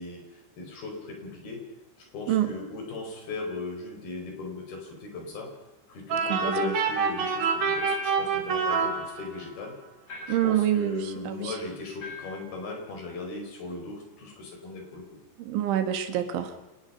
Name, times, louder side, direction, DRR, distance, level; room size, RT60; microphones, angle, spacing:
voice 1, 0.0-1.6 2.0-5.5 5.9-9.8 10.3-15.0, left 3 dB, 50° left, 2 dB, 6.6 m, -37 dB
sound 1, 6.1-9.6, right 5 dB, 55° right, 3.4 m, -27 dB
sound 2, 7.7-8.3 10.1-10.6 12.0-12.4, left 6 dB, 25° left, 7.6 m, -39 dB
voice 2, 10.3-11.4 15.5-16.5, right 11 dB, 70° right, 8 dB, 3.8 m, -26 dB
27.5 x 19.5 x 5.8 m, 1.1 s
omnidirectional pair, 6.0 m